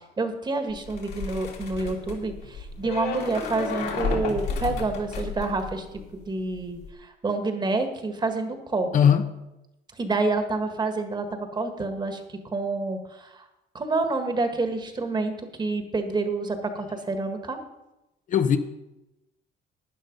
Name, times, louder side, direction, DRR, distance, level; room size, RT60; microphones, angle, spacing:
voice 1, 0.2-5.9 6.1-9.1 10.0-12.2 12.5-13.4 13.7-17.6, right 3 dB, 25° right, 6 dB, 1.6 m, -28 dB
sound 1, 0.7-6.2 6.5-6.9, left 4 dB, 75° left, 2.8 m, -32 dB
voice 2, 8.9-9.3 18.3-18.6, left 8 dB, 50° left, 8 dB, 0.9 m, -18 dB
12.0 x 9.6 x 5.3 m, 0.95 s
cardioid pair, 110°, 17 cm